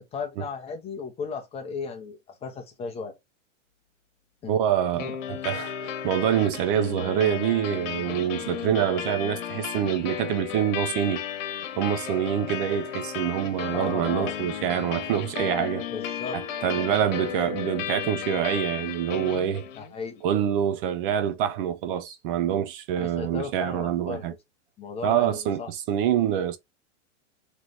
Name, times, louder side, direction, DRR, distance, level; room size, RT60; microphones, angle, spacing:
voice 1, 0.1-3.2 4.4-4.6 4.9-5.1 13.7-14.5 15.9-16.8 19.8-20.2 23.0-24.4 24.8-25.7, left 5 dB, 15° left, 0.8 m, -36 dB
voice 2, 4.5-11.2 11.8-15.9 16.3-19.7 20.2-24.3 25.0-26.6, right 10 dB, 45° right, 0.6 m, -26 dB
sound 1, 5.0-20.0, left 9 dB, 70° left, 1.2 m, -34 dB
3.2 x 3.1 x 4.0 m
supercardioid pair, 150°, 38 cm